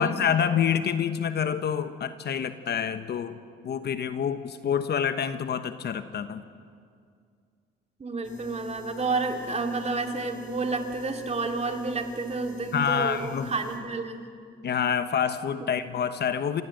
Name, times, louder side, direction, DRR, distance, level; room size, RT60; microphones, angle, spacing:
voice 1, 0.0-3.4 3.6-6.4 12.7-13.5 14.6-16.6, left 8 dB, 55° left, 11 dB, 1.2 m, -27 dB
voice 2, 8.0-14.3, right 3 dB, 30° right, 4 dB, 2.6 m, -30 dB
sound 1, 8.2-13.8, left 1 dB, 40° left, 5.5 m, -43 dB
28.0 x 15.5 x 7.9 m, 2.2 s
cardioid pair, 90°, 20 cm